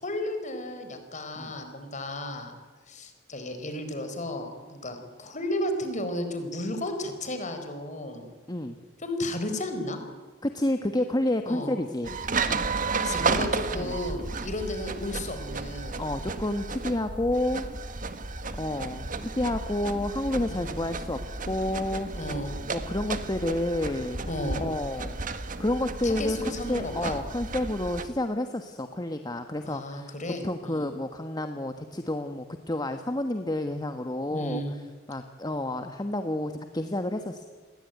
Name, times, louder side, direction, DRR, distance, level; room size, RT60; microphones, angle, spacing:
voice 1, 0.0-2.5 2.9-8.3 9.0-10.0 11.5-11.7 13.0-16.0 20.5-20.7 22.1-22.6 24.3-24.7 26.0-27.2 29.6-30.9 34.3-34.7, left 1 dB, 40° left, 7 dB, 4.5 m, -33 dB
voice 2, 10.4-12.1 12.5-12.7 13.7-14.0 16.0-17.7 18.6-21.2 21.5-22.1 22.7-24.3 24.5-25.2 25.6-30.1 30.4-34.8 35.1-37.5, left 1 dB, 20° left, 7 dB, 1.3 m, -30 dB
sound 1, 12.0-28.1, right 3 dB, 45° right, 1.7 m, -33 dB
29.5 x 21.5 x 9.4 m, 1.4 s
head